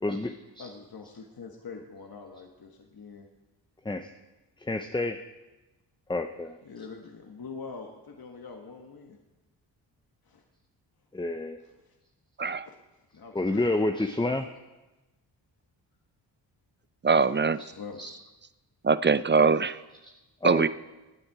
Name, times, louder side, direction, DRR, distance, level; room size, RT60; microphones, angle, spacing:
voice 1, 0.0-0.7 3.8-4.1 4.6-5.2 6.1-6.6 11.1-11.6 13.3-14.5 17.9-18.2 20.0-20.1 20.4-20.7, left 2 dB, 10° left, 7 dB, 0.7 m, -29 dB
voice 2, 0.6-3.3 6.6-9.2 10.2-10.4 11.6-12.0 12.6-12.8 13.1-14.3 17.6-18.0, left 5 dB, 50° left, 2 dB, 1.6 m, -44 dB
voice 3, 17.0-17.6 18.8-19.8 20.4-20.7, right 5 dB, 25° right, 15 dB, 0.5 m, -22 dB
17.5 x 8.8 x 4.8 m, 1.1 s
supercardioid pair, 50°, 46 cm